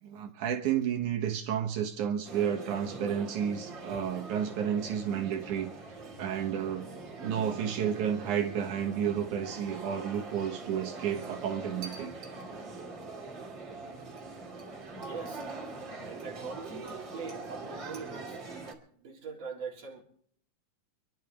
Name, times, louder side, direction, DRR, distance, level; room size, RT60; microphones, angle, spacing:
voice 1, 0.0-5.7 6.2-6.9 7.2-12.1, right 8 dB, 70° right, 2.8 m, -31 dB
sound 1, 2.2-18.7, right 3 dB, 35° right, 3.2 m, -43 dB
voice 2, 15.0-15.5 16.0-18.4 19.0-20.0, right 5 dB, 50° right, 4.4 m, -42 dB
28.5 x 11.5 x 3.4 m
omnidirectional pair, 3.7 m